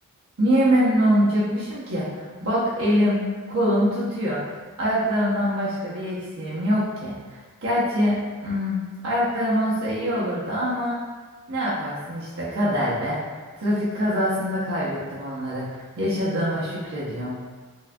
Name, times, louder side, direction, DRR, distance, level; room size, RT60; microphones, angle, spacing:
voice 1, 0.4-7.1 7.6-11.0 11.5-13.2 13.6-17.4, equal, 70° right, -8 dB, 0.7 m, -24 dB
4.5 x 2.6 x 2.2 m, 1.4 s
head